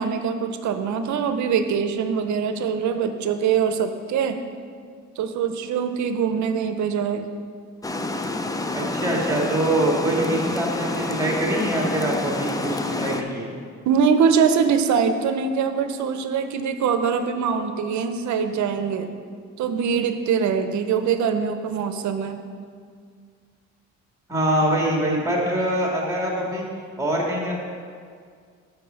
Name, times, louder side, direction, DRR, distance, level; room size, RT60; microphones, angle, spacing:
voice 1, 0.0-4.4 5.2-7.3 13.9-19.1 19.6-22.4, right 6 dB, 70° right, 8 dB, 0.7 m, -23 dB
Water, 7.8-13.2, left 2 dB, 10° left, 0.5 m, -28 dB
voice 2, 8.7-13.5 24.3-26.7 27.0-27.5, right 1 dB, 10° right, -2 dB, 2.0 m, -24 dB
5.8 x 5.3 x 6.9 m, 2.1 s
cardioid pair, 90°, 30 cm